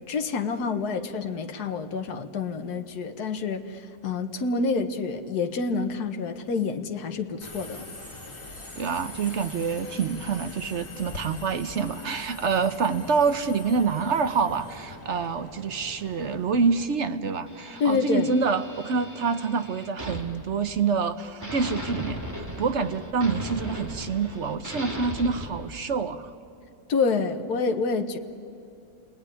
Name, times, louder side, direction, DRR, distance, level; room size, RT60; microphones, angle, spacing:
voice 1, 0.1-7.8 17.8-18.3 26.9-28.2, left 4 dB, 85° left, 7 dB, 1.6 m, -28 dB
Subway metro underground, 7.4-16.9, left 2 dB, 55° left, 3.2 m, -43 dB
voice 2, 8.8-22.2 22.6-26.3, right 5 dB, 55° right, 10 dB, 1.0 m, -26 dB
sound 1, 17.5-21.1 21.4-25.5, equal, 10° right, 2.4 m, -38 dB
30.0 x 20.0 x 9.9 m, 2.6 s
omnidirectional pair, 1.6 m